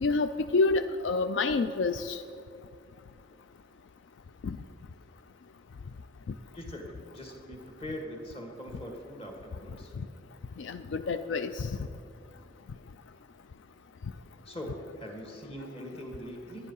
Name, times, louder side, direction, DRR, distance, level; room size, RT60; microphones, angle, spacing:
voice 1, 0.0-2.2 4.4-4.6 10.0-10.1 10.6-11.9, left 3 dB, 80° left, 10 dB, 0.4 m, -28 dB
voice 2, 6.5-10.0 14.5-16.7, equal, 30° left, 2 dB, 1.8 m, -42 dB
11.5 x 10.0 x 5.5 m, 2.5 s
head